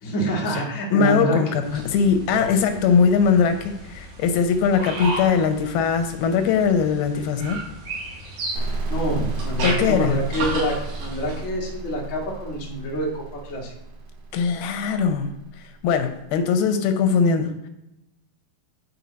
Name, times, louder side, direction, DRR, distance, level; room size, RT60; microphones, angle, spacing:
voice 1, 0.0-1.6 2.3-2.5 8.5-13.7, equal, 35° left, -3 dB, 1.2 m, -27 dB
voice 2, 0.9-7.6 9.6-10.2 14.3-15.3 15.8-17.7, left 6 dB, 90° left, 7 dB, 2.7 m, -21 dB
sound 1, 1.6-11.5, right 2 dB, 85° right, 4.3 m, -34 dB
sound 2, 8.6-16.1, right 3 dB, 70° right, 1.5 m, -32 dB
10.0 x 4.6 x 4.0 m, 0.89 s
omnidirectional pair, 4.3 m